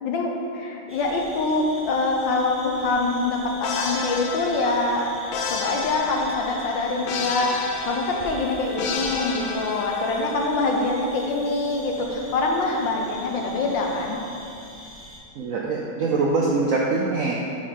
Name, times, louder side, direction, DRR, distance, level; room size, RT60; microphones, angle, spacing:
voice 1, 0.0-5.1 5.5-14.2, left 3 dB, 70° left, 1 dB, 1.5 m, -25 dB
sound 1, 0.9-15.2, equal, 15° right, 0.5 m, -42 dB
sound 2, 3.6-10.5, left 5 dB, 90° left, 1.5 m, -32 dB
voice 2, 15.4-17.3, right 3 dB, 75° right, -3 dB, 0.8 m, -23 dB
6.4 x 4.9 x 5.8 m, 2.6 s
omnidirectional pair, 2.1 m